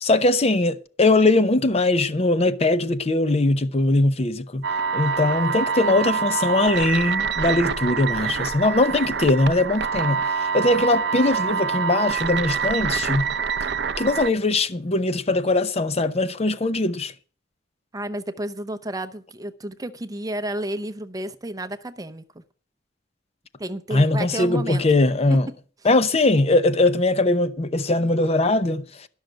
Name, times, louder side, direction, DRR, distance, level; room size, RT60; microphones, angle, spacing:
voice 1, 0.0-4.7 4.9-13.3 14.0-17.1 23.9-25.5 25.8-29.1, left 2 dB, 35° left, 0.7 m, -21 dB
sound 1, 4.6-14.3, right 6 dB, 65° right, 0.5 m, -26 dB
voice 2, 17.9-22.4 23.6-24.8, right 1 dB, 20° right, 0.7 m, -31 dB
12.0 x 6.4 x 7.8 m
head